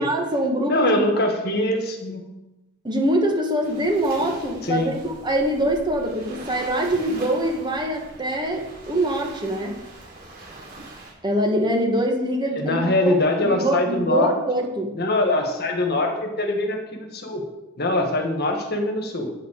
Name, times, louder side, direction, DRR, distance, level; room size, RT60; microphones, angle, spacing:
voice 1, 0.0-1.1 2.8-9.7 11.2-13.2 13.4-14.9, right 1 dB, 20° right, 1 dB, 1.7 m, -24 dB
voice 2, 0.7-2.3 4.6-4.9 12.6-14.3 15.0-17.5 17.8-19.3, left 2 dB, 50° left, 4 dB, 1.8 m, -23 dB
Waves surf, 3.6-11.1, right 2 dB, 50° right, 4.8 m, -42 dB
9.4 x 7.5 x 7.5 m, 1.0 s
head